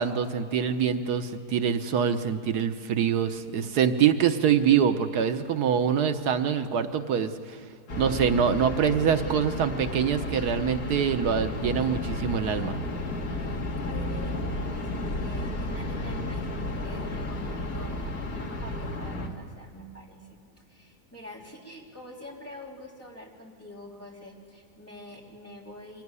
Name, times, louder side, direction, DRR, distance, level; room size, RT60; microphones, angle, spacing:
voice 1, 0.0-7.6 8.0-12.8, right 7 dB, 85° right, 8 dB, 1.5 m, -25 dB
sound 1, 7.9-19.3, left 2 dB, 70° left, 2.4 m, -32 dB
voice 2, 13.8-18.0 18.3-26.0, left 1 dB, 10° left, -3 dB, 3.2 m, -46 dB
24.5 x 17.0 x 9.7 m, 2.3 s
omnidirectional pair, 1.7 m